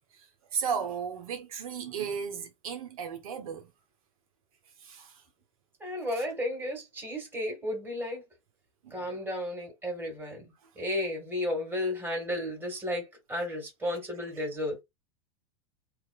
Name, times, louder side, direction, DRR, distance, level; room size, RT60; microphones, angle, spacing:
voice 1, 0.2-3.7 4.8-5.2 6.2-6.3 8.8-9.0, right 7 dB, 75° right, 0.7 m, -35 dB
voice 2, 5.8-8.2 8.9-14.8, left 1 dB, 10° right, 1.7 m, -33 dB
2.8 x 2.2 x 2.3 m
hypercardioid pair, 95°, 18 cm